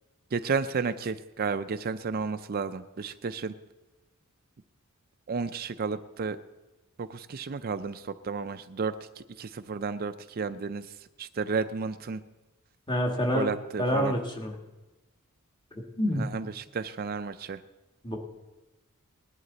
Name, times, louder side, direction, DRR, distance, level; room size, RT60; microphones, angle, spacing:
voice 1, 0.3-3.5 5.3-6.4 7.0-10.9 11.2-12.2 13.3-14.2 16.1-17.6, right 5 dB, 45° right, 11 dB, 0.4 m, -32 dB
voice 2, 12.9-13.5 13.8-14.5 16.0-16.3 18.0-18.2, left 1 dB, 20° left, 1 dB, 1.8 m, -27 dB
20.0 x 11.0 x 4.0 m, 1.1 s
head